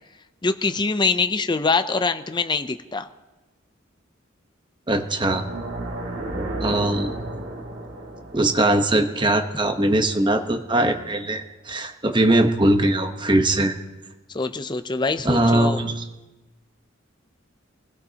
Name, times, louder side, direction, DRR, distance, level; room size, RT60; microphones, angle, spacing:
voice 1, 0.4-3.1 14.3-15.8, left 4 dB, 25° left, 9 dB, 0.6 m, -24 dB
voice 2, 4.9-5.4 6.6-7.1 8.3-13.7 15.2-16.1, right 1 dB, 25° right, 5 dB, 1.1 m, -21 dB
sound 1, 5.2-10.3, right 2 dB, 80° right, 2.6 m, -34 dB
25.5 x 16.0 x 2.9 m, 1.1 s
head